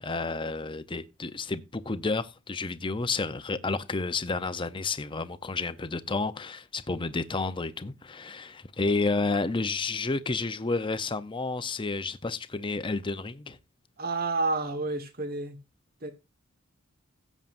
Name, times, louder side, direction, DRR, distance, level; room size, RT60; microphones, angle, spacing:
voice 1, 0.0-13.6, left 3 dB, 25° left, 0.7 m, -31 dB
voice 2, 14.0-15.6 16.0-16.1, right 3 dB, 45° right, 1.5 m, -30 dB
16.5 x 7.3 x 2.5 m
head